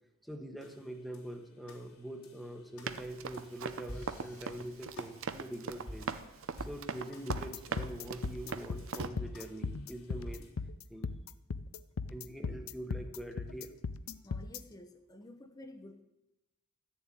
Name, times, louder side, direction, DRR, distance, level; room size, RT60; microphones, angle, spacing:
voice 1, 0.2-6.1 6.6-10.5 10.9-11.1 12.0-13.7, right 1 dB, ahead, 3 dB, 1.1 m, -44 dB
sound 1, 0.6-10.5, left 1 dB, 85° left, 3.4 m, -52 dB
Run, 2.9-9.1, right 5 dB, 65° right, 0.7 m, -39 dB
sound 2, 7.3-14.6, left 4 dB, 70° left, 0.5 m, -38 dB
voice 2, 14.2-16.0, left 1 dB, 20° left, 6 dB, 0.8 m, -51 dB
13.0 x 7.3 x 9.1 m, 0.94 s
head